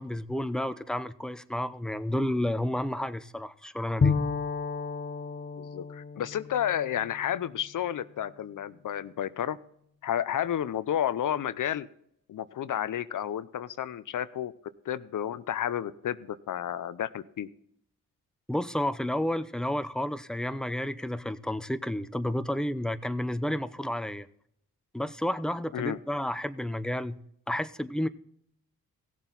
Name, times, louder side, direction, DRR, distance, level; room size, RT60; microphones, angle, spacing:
voice 1, 0.0-4.1 18.5-24.3 24.9-27.2 27.5-28.1, left 1 dB, ahead, 0.7 m, -31 dB
Bowed string instrument, 4.0-7.7, left 5 dB, 30° left, 0.9 m, -31 dB
voice 2, 5.6-9.6 10.0-11.9 12.3-14.5 14.8-17.5 25.7-26.0, left 10 dB, 65° left, 0.7 m, -31 dB
16.5 x 7.3 x 4.0 m
supercardioid pair, 50°, 34 cm